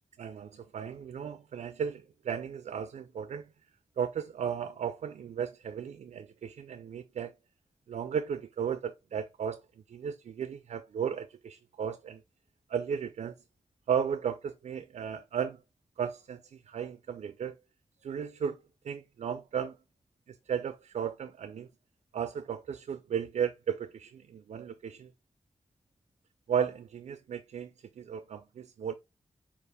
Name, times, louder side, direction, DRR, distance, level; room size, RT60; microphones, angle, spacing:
voice 1, 0.2-3.5 4.0-7.3 7.9-9.6 9.9-12.2 12.7-13.3 13.9-15.6 16.0-17.6 18.0-18.6 18.8-19.8 20.3-21.7 22.1-25.1 26.5-27.7 28.0-28.9, right 8 dB, 85° right, 0.4 m, -35 dB
4.8 x 2.4 x 3.3 m
cardioid pair, 55°, 11 cm